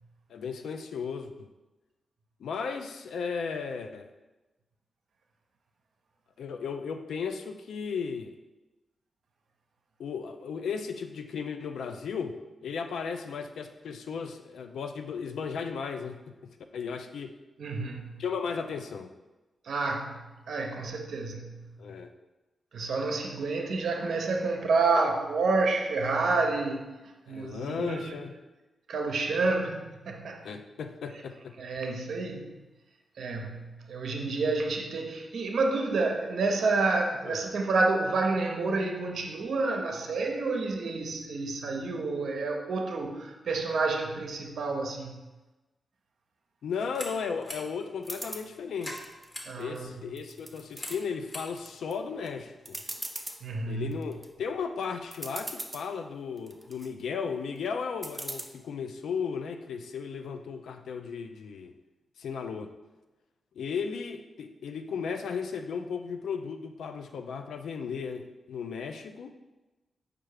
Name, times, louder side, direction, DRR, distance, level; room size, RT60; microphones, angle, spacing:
voice 1, 0.3-1.5 2.4-4.1 6.4-8.3 10.0-12.4 12.6-17.4 18.2-19.1 21.8-22.1 27.3-28.3 30.4-31.6 37.2-37.4 46.6-49.0 49.6-52.8 53.7-61.7 62.2-62.7 63.6-69.3, left 6 dB, 80° left, 6 dB, 0.3 m, -35 dB
voice 2, 17.6-18.2 19.6-20.2 20.5-21.7 22.7-28.2 28.9-30.5 31.1-31.2 31.6-32.5 33.2-45.2 49.5-49.9 53.4-54.0, right 3 dB, 75° right, 3 dB, 0.5 m, -29 dB
sound 1, 46.7-53.0, left 1 dB, 30° left, 1.0 m, -46 dB
sound 2, 48.0-48.5 49.0-49.8 50.2-51.0 51.5-51.9 52.3-52.4 52.7-53.4 53.9-54.3 54.8-54.9 55.1-55.9 56.4-56.9 58.0-58.4, right 1 dB, 25° right, 0.6 m, -39 dB
4.5 x 2.4 x 4.7 m, 1.1 s
supercardioid pair, 45°, 0 cm